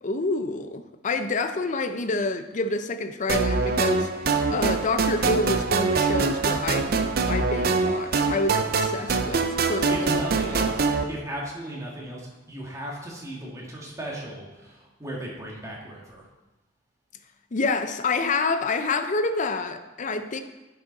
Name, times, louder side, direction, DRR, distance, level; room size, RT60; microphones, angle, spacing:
voice 1, 0.0-4.1 4.5-7.0 7.3-10.2 17.5-20.4, left 3 dB, 40° left, 9 dB, 0.5 m, -28 dB
sound 1, 3.3-11.0, right 4 dB, 50° right, 0.5 m, -24 dB
voice 2, 9.9-16.3, right 1 dB, 15° right, -3 dB, 1.7 m, -36 dB
10.0 x 5.5 x 3.9 m, 1.1 s
head